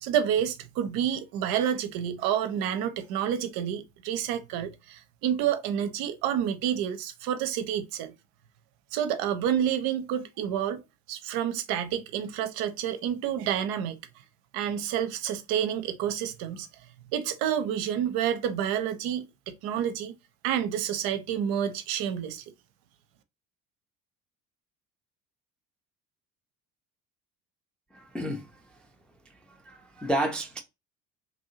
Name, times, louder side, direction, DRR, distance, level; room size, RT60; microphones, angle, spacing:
voice 1, 0.0-8.1 8.9-10.8 11.1-14.0 14.5-16.7 17.1-20.1 20.4-22.4, right 9 dB, 50° right, 0.5 m, -29 dB
voice 2, 27.9-28.5 29.5-30.6, right 1 dB, ahead, 0.3 m, -31 dB
2.9 x 2.6 x 2.7 m
figure-of-eight pair, 60°, 46 cm